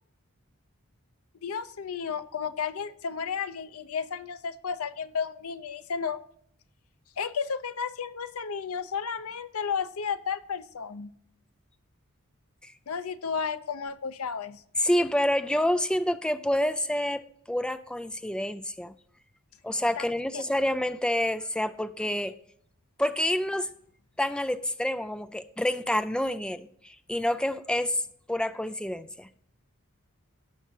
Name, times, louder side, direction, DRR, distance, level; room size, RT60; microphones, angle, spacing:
voice 1, 1.4-6.2 7.2-11.1 12.9-14.6 20.0-20.1 20.3-20.4, left 6 dB, 80° left, 12 dB, 0.6 m, -33 dB
voice 2, 14.8-17.2 17.5-18.9 19.6-22.3 23.0-23.7 24.2-28.0 28.3-29.3, left 1 dB, 5° left, 11 dB, 0.3 m, -28 dB
17.0 x 5.8 x 2.8 m, 0.69 s
head